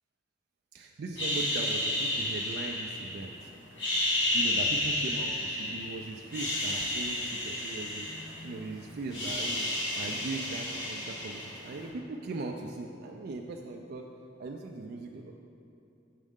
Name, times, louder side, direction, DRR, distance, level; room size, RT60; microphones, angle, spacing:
voice 1, 0.7-3.4 4.3-8.1 8.4-14.1 14.4-15.3, right 3 dB, 55° right, 1 dB, 0.4 m, -39 dB
sound 1, 1.2-3.3 3.7-5.9 6.2-8.7 8.9-11.8, left 1 dB, 75° left, 1.5 m, -31 dB
7.4 x 6.3 x 3.6 m, 2.7 s
head